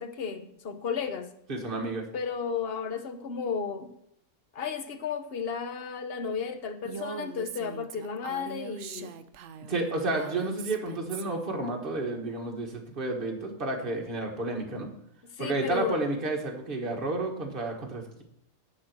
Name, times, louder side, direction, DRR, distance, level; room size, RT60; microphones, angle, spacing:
voice 1, 0.0-1.3 2.1-3.9 4.5-9.1 15.3-16.0, left 6 dB, 50° left, 7 dB, 0.9 m, -33 dB
voice 2, 1.5-2.1 9.7-14.9 15.4-18.2, right 2 dB, 40° right, 1 dB, 1.7 m, -31 dB
Female speech woman speaking, 6.8-11.5, right 7 dB, 65° right, 0.9 m, -41 dB
10.0 x 4.4 x 7.6 m, 0.74 s
omnidirectional pair, 1.5 m